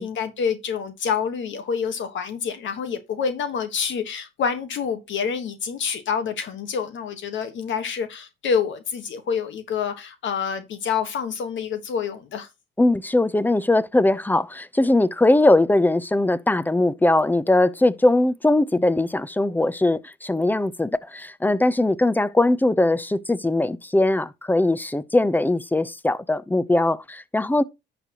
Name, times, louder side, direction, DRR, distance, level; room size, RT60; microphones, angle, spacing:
voice 1, 0.0-12.5, left 6 dB, 70° left, 1.4 m, -27 dB
voice 2, 12.8-27.6, left 2 dB, 10° left, 0.6 m, -20 dB
11.0 x 6.8 x 2.9 m
cardioid pair, 90°, 20 cm